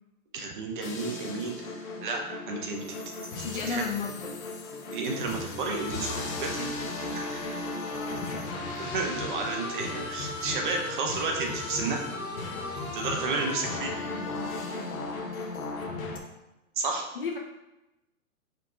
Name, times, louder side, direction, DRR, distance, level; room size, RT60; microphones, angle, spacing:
voice 1, 0.3-3.0 3.7-3.8 4.9-6.7 7.1-7.4 8.8-12.1 12.9-13.9 16.8-17.0, right 3 dB, 35° right, 2 dB, 0.6 m, -32 dB
sound 1, 0.8-16.2, left 3 dB, 70° left, 0.9 m, -36 dB
voice 2, 3.4-4.4 7.9-8.8 9.5-9.7 13.2-13.4 15.2-15.4 15.8-16.1 17.1-17.4, left 5 dB, 40° left, 2 dB, 0.4 m, -35 dB
sound 2, 10.6-15.2, equal, 70° right, 1.1 m, -48 dB
4.4 x 4.1 x 2.5 m, 0.95 s
hypercardioid pair, 155°, 44 cm